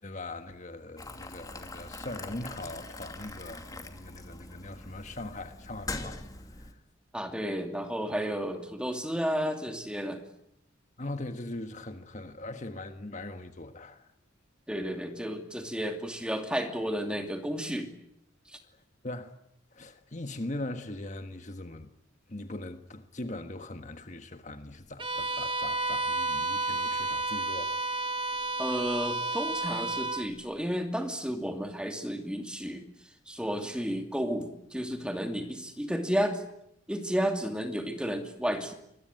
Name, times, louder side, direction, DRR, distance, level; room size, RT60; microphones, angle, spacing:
voice 1, 0.0-6.2 6.5-6.7 11.0-14.1 19.0-19.3 19.7-21.9 22.3-27.7 28.0-28.6, left 2 dB, 35° left, 1.5 m, -40 dB
Boiling, 1.0-6.7, left 2 dB, 20° left, 2.5 m, -42 dB
voice 2, 7.1-10.2 14.7-17.9 18.5-18.6 28.6-32.9 33.3-36.4 36.9-38.7, equal, 5° right, 2.7 m, -32 dB
Bowed string instrument, 25.0-30.3, right 3 dB, 25° right, 2.0 m, -31 dB
25.5 x 21.5 x 9.2 m
head